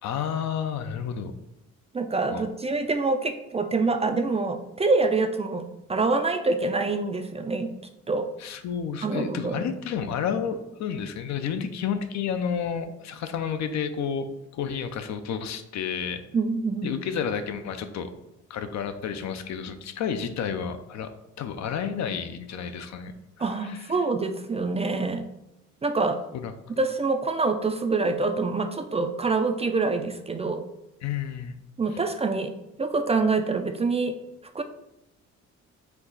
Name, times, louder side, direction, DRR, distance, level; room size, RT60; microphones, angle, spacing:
voice 1, 0.0-1.3 2.3-2.4 8.4-16.2 16.8-18.1 18.5-21.1 21.4-24.0 26.3-26.8 31.0-31.6 31.9-32.0, left 7 dB, 65° left, 9 dB, 0.5 m, -31 dB
voice 2, 1.9-7.7 8.1-8.3 9.0-9.7 16.3-16.9 23.4-25.2 25.8-26.2 26.8-30.6 31.8-32.5 32.8-34.2 34.5-34.6, right 3 dB, 20° right, 6 dB, 0.3 m, -26 dB
4.5 x 2.3 x 3.9 m, 0.92 s
cardioid pair, 90°, 30 cm